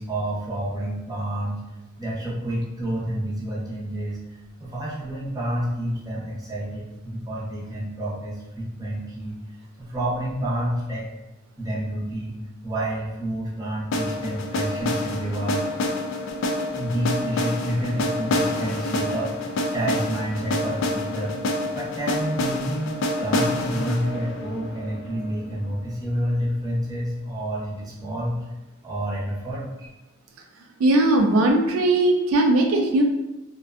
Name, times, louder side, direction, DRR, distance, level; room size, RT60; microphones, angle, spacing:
voice 1, 0.0-1.6 2.0-4.2 4.6-9.4 9.8-11.1 11.6-12.4 12.6-15.7 16.7-19.3 19.7-21.4 21.7-22.9 23.2-28.4 28.8-29.9, right 1 dB, 20° right, -6 dB, 0.6 m, -29 dB
sound 1, 13.9-25.8, left 1 dB, 65° left, 0.3 m, -27 dB
voice 2, 30.8-33.0, right 1 dB, 80° right, 3 dB, 0.3 m, -19 dB
2.5 x 2.1 x 2.4 m, 1.0 s
head